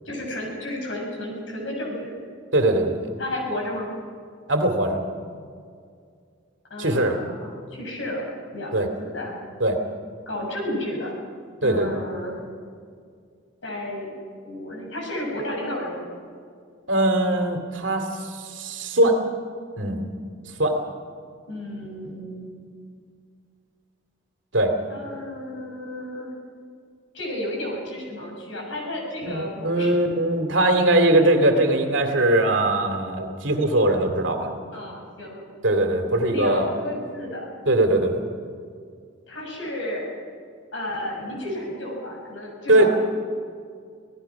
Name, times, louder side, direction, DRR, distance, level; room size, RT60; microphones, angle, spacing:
voice 1, 0.0-2.1 3.2-3.9 6.7-8.2 8.5-9.4 10.3-11.1 11.6-12.4 13.6-14.2 14.5-16.0 21.5-22.5 24.9-26.3 27.1-30.1 34.7-35.5 36.3-37.5 39.3-40.1 40.7-42.9, left 1 dB, 70° left, 0 dB, 6.8 m, -32 dB
voice 2, 2.5-3.1 4.5-5.0 6.8-7.2 8.7-8.9 9.6-9.8 11.6-11.9 16.9-19.2 19.8-20.1 20.6-20.8 24.5-24.7 29.2-34.5 35.6-36.7 37.7-38.2 42.7-42.9, right 1 dB, 70° right, 5 dB, 2.6 m, -21 dB
26.5 x 17.5 x 6.0 m, 2.2 s
head